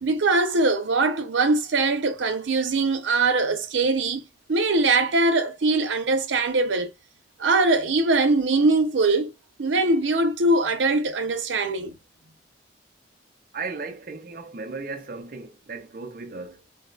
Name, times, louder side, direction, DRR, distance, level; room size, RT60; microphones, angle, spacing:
voice 1, 0.0-4.2 4.5-6.9 7.4-9.3 9.6-11.9, right 3 dB, 90° right, 0.6 m, -22 dB
voice 2, 13.5-16.6, right 4 dB, 50° right, 0.4 m, -36 dB
4.0 x 2.0 x 2.3 m
head